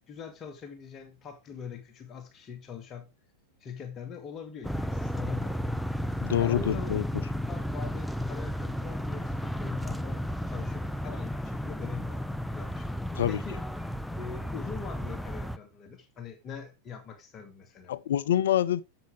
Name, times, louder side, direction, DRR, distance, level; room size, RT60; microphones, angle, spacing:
voice 1, 0.1-3.1 3.6-6.9 7.5-13.6 14.2-17.9, left 6 dB, 25° left, 2.0 m, -43 dB
sound 1, 4.6-15.6, equal, ahead, 0.6 m, -33 dB
voice 2, 6.2-7.0 13.2-13.4 17.9-18.8, left 11 dB, 60° left, 0.6 m, -26 dB
9.3 x 7.8 x 3.2 m
figure-of-eight pair, 90°, 0 cm